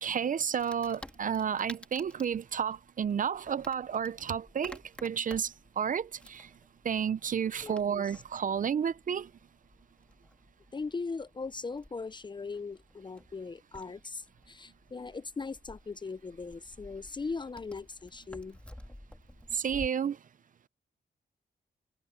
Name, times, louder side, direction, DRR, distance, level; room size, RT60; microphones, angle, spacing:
voice 1, 0.0-6.5 6.8-9.3 19.5-20.2, right 7 dB, 45° right, 0.4 m, -31 dB
Wood, 0.6-19.9, left 1 dB, 5° left, 2.8 m, -52 dB
voice 2, 7.6-8.0 10.7-18.6, left 4 dB, 25° left, 0.4 m, -39 dB
wide cardioid pair, 160°, 19 cm